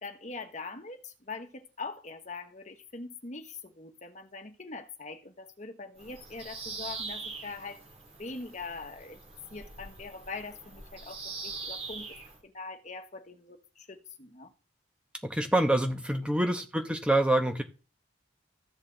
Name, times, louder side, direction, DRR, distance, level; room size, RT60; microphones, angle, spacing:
voice 1, 0.0-7.8 8.2-9.2 9.5-12.2 12.4-14.5 16.2-16.4, left 3 dB, 40° left, 1.3 m, -42 dB
Bird vocalization bird call bird song, 6.0-12.4, right 4 dB, 35° right, 2.9 m, -42 dB
voice 2, 15.2-17.6, right 1 dB, 5° right, 1.0 m, -26 dB
14.5 x 8.3 x 4.0 m
head